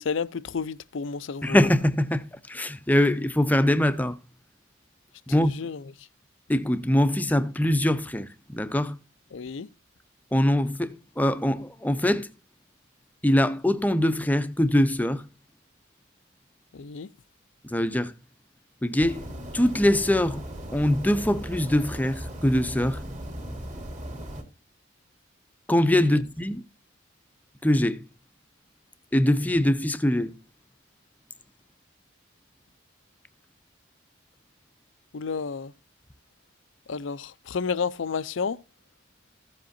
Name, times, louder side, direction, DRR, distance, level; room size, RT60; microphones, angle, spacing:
voice 1, 0.0-1.6 5.4-5.8 9.3-9.7 16.7-17.1 26.1-26.2 35.1-35.7 36.9-38.6, left 5 dB, 75° left, 0.5 m, -31 dB
voice 2, 1.4-4.2 5.3-5.5 6.5-9.0 10.3-12.3 13.2-15.3 17.6-18.1 18.8-19.3 19.5-20.4 20.7-23.0 25.7-26.6 27.6-28.1 29.1-30.4, left 1 dB, 10° left, 0.6 m, -23 dB
sound 1, 19.0-24.4, equal, 35° right, 2.0 m, -37 dB
15.0 x 7.7 x 2.6 m
head